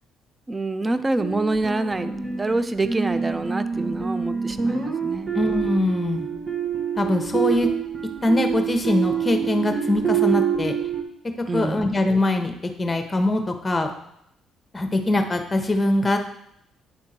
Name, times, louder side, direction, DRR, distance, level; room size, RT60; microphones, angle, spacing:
voice 1, 0.5-5.3 11.5-11.9, right 2 dB, 25° right, 12 dB, 0.5 m, -26 dB
sound 1, 1.2-11.0, right 7 dB, 45° right, 1.4 m, -26 dB
voice 2, 5.3-6.3 7.0-7.7 8.2-10.7 11.5-13.9 14.7-16.2, left 1 dB, 20° left, 5 dB, 1.0 m, -22 dB
8.8 x 3.6 x 4.3 m, 0.77 s
supercardioid pair, 70°, 0 cm